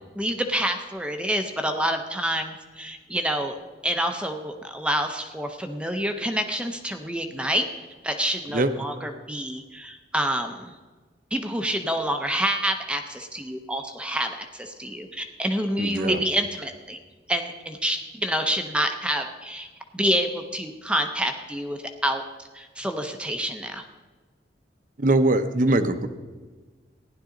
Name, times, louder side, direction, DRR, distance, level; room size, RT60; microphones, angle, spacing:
voice 1, 0.2-3.6 3.8-7.7 8.0-10.7 11.3-17.0 17.3-19.7 19.9-22.2 22.5-23.8, equal, 5° right, 5 dB, 0.6 m, -27 dB
voice 2, 15.8-16.2 25.0-26.1, right 2 dB, 45° right, 10 dB, 0.7 m, -21 dB
15.5 x 10.5 x 3.8 m, 1.3 s
head